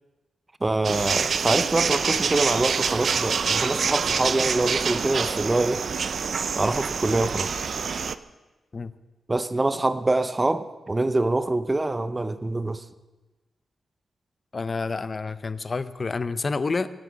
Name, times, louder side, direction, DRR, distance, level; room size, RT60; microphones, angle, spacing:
voice 1, 0.6-5.8 6.6-7.5 9.3-12.8, right 2 dB, 20° right, 12 dB, 0.8 m, -25 dB
sound 1, 0.8-8.1, right 6 dB, 55° right, 0.6 m, -26 dB
voice 2, 14.5-16.9, left 4 dB, 35° left, 14 dB, 0.7 m, -28 dB
24.0 x 8.3 x 6.4 m, 1.1 s
wide cardioid pair, 135°, 0 cm